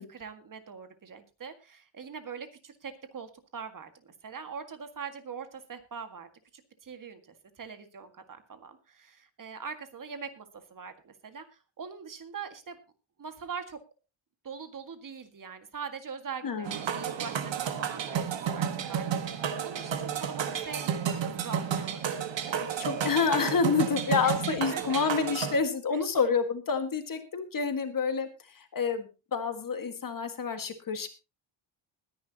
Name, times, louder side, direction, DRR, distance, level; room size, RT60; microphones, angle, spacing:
voice 1, 0.0-12.8 13.2-13.8 14.4-22.6 24.5-25.0 25.9-26.0, right 6 dB, 40° right, 8 dB, 1.9 m, -43 dB
sound 1, 16.6-25.6, right 8 dB, 65° right, 1.6 m, -32 dB
voice 2, 22.8-28.3 28.6-31.1, left 5 dB, 45° left, 8 dB, 1.8 m, -28 dB
20.5 x 10.5 x 2.9 m, 0.30 s
wide cardioid pair, 150°, 48 cm